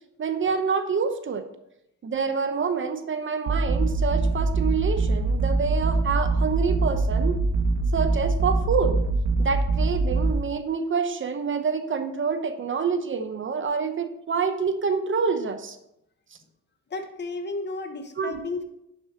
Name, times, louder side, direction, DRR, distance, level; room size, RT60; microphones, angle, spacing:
voice 1, 0.2-1.4 2.0-7.4 7.9-9.0 9.4-15.8 18.2-18.4, right 5 dB, 40° right, 8 dB, 0.8 m, -27 dB
sound 1, 3.5-10.3, right 3 dB, 60° right, 1.3 m, -23 dB
voice 2, 16.9-18.6, left 3 dB, 35° left, 7 dB, 1.2 m, -33 dB
11.0 x 7.1 x 2.9 m, 0.81 s
cardioid pair, 90°, 30 cm